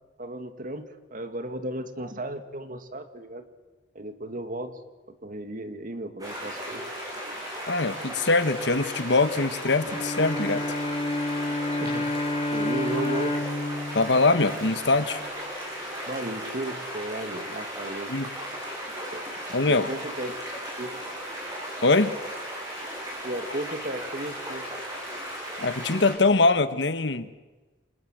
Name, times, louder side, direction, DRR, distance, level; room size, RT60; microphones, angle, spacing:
voice 1, 0.2-3.4 3.9-4.8 5.1-6.8 11.7-12.1 12.5-13.5 16.1-18.1 19.1-20.4 20.8-21.0 23.2-24.7, right 1 dB, 50° right, 8 dB, 2.3 m, -35 dB
sound 1, 6.2-26.1, equal, 20° right, 7.7 m, -36 dB
voice 2, 7.7-10.6 13.9-15.2 18.1-18.3 19.5-19.9 21.8-22.2 25.6-27.3, left 3 dB, 70° left, 10 dB, 1.4 m, -23 dB
Bowed string instrument, 9.8-15.2, left 2 dB, 30° left, 2.2 m, -30 dB
29.5 x 26.5 x 7.6 m, 1.2 s
head